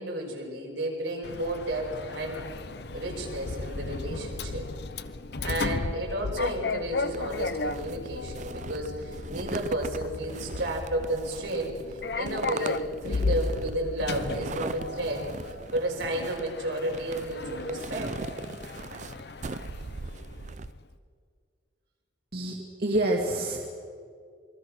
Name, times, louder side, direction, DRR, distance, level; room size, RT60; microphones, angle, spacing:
voice 1, 0.0-2.4 2.9-4.6 5.4-11.7 12.1-18.1 18.9-19.0 20.1-20.2, right 1 dB, 85° right, -1 dB, 5.9 m, -32 dB
Sliding door, 1.2-20.8, left 3 dB, 60° left, 0.9 m, -35 dB
sound 1, 7.1-20.7, right 4 dB, 40° right, 0.5 m, -40 dB
voice 2, 22.3-23.7, right 1 dB, 55° right, -1 dB, 2.4 m, -27 dB
27.5 x 22.0 x 6.3 m, 2.2 s
head